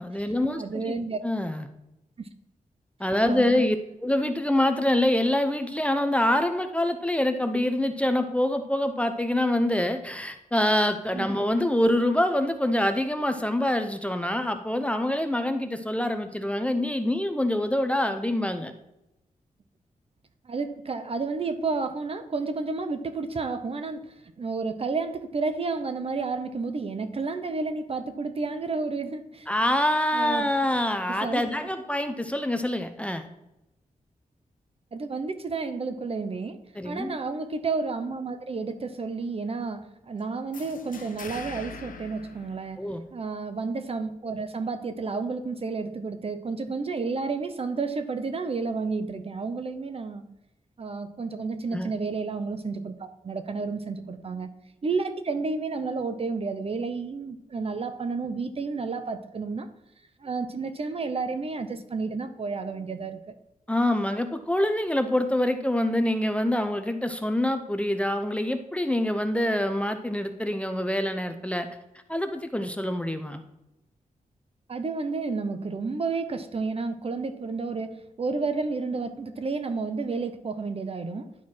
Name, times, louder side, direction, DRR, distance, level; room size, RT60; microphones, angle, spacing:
voice 1, 0.0-0.6 1.2-1.7 3.0-18.7 29.5-33.3 36.8-37.2 42.8-43.0 51.7-51.9 63.7-71.7 72.1-73.4, left 1 dB, 10° left, 0.6 m, -25 dB
voice 2, 0.5-1.2 3.3-3.7 11.1-11.3 20.4-29.5 30.1-30.5 31.1-31.4 34.9-42.8 43.1-50.3 50.8-54.5 54.8-59.7 60.2-63.3 74.7-81.4, right 4 dB, 45° right, 0.7 m, -31 dB
sound 1, 40.5-43.2, left 5 dB, 70° left, 0.8 m, -43 dB
10.5 x 4.6 x 4.3 m
wide cardioid pair, 95°, 14 cm